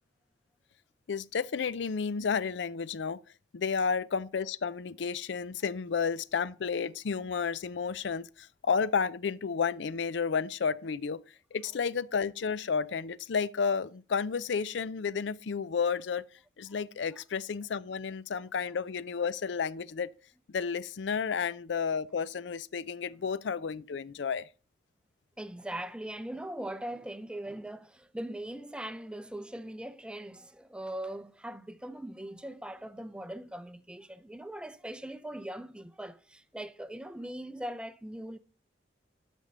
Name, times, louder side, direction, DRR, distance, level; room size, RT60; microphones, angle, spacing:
voice 1, 1.1-3.2 3.5-11.2 11.5-16.3 16.6-20.1 20.5-24.5, left 6 dB, 80° left, 0.4 m, -31 dB
voice 2, 25.4-38.4, right 1 dB, 5° right, 0.4 m, -40 dB
12.5 x 5.2 x 5.4 m
head